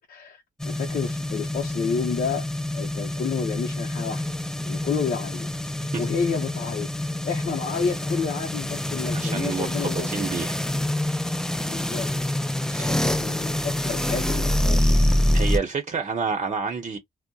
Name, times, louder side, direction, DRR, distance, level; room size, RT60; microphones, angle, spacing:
voice 1, 0.1-2.4 2.7-4.2 4.6-5.5 5.8-10.1 11.7-12.1 12.8-15.1, left 6 dB, 65° left, 0.6 m, -30 dB
sound 1, 0.6-15.6, left 1 dB, 5° left, 0.4 m, -26 dB
voice 2, 9.1-10.6 12.7-12.9 15.3-17.0, right 5 dB, 45° right, 0.7 m, -29 dB
2.6 x 2.1 x 2.3 m
supercardioid pair, 55°, 16 cm